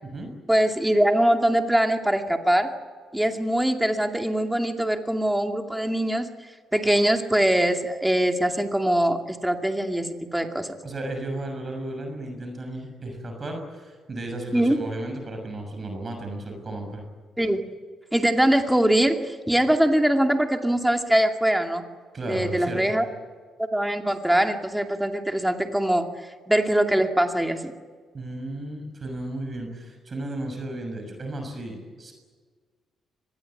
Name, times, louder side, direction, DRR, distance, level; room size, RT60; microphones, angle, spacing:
voice 1, 0.5-2.7 3.1-6.3 6.7-10.7 14.5-14.8 17.4-17.6 18.1-21.8 22.3-23.0 23.6-26.1 26.5-27.7, right 1 dB, 5° right, 4 dB, 2.4 m, -22 dB
voice 2, 10.8-17.0 22.1-23.0 28.1-32.1, right 1 dB, 35° right, 4 dB, 6.6 m, -34 dB
25.0 x 20.0 x 9.9 m, 1.5 s
cardioid pair, 90°, 0 cm